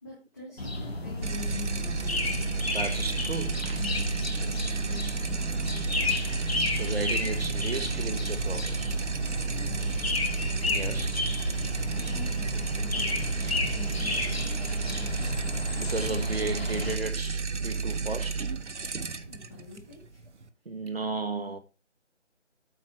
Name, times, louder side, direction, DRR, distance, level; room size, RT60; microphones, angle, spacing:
voice 1, 0.0-2.4 4.4-6.5 9.5-10.0 11.9-15.2 19.3-20.3, left 4 dB, 15° left, 1.4 m, -47 dB
sound 1, 0.6-17.0, left 2 dB, 55° left, 2.0 m, -32 dB
sound 2, 1.2-20.5, right 5 dB, 70° right, 1.1 m, -32 dB
voice 2, 2.7-3.9 6.8-9.0 10.6-11.2 15.7-18.5 20.6-21.6, right 3 dB, 55° right, 1.4 m, -34 dB
8.4 x 4.4 x 6.5 m
figure-of-eight pair, 175°, 36 cm